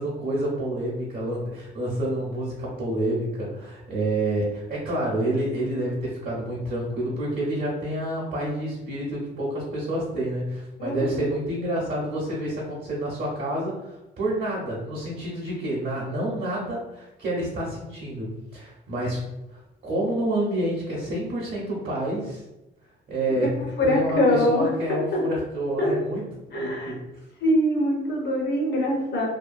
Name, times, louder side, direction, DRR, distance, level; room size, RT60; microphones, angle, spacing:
voice 1, 0.0-19.2 19.8-22.4 23.1-26.2 26.5-26.9, right 1 dB, 50° right, -5 dB, 0.8 m, -28 dB
voice 2, 10.8-11.3 23.8-24.7 25.1-25.2 25.8-25.9 26.5-26.9 27.4-29.3, left 1 dB, 60° left, -1 dB, 0.9 m, -23 dB
2.7 x 2.2 x 2.5 m, 0.97 s
cardioid pair, 90°, 20 cm